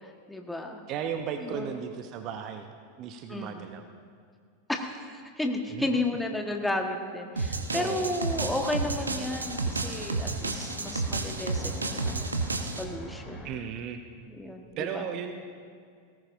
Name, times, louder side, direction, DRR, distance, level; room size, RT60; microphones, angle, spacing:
voice 1, 0.0-0.8 1.4-1.7 3.3-3.6 4.7-12.3 12.8-13.5 14.3-15.1, left 1 dB, 5° left, 3 dB, 1.3 m, -33 dB
voice 2, 0.9-3.8 5.7-6.0 7.7-8.1 13.4-14.0 14.8-15.3, right 8 dB, 35° right, 7 dB, 0.7 m, -35 dB
sound 1, 7.3-13.5, equal, 25° left, 3.7 m, -43 dB
sound 2, 7.4-12.8, right 3 dB, 75° right, 0.9 m, -31 dB
19.5 x 17.5 x 2.6 m, 2.2 s
figure-of-eight pair, 90°, 0 cm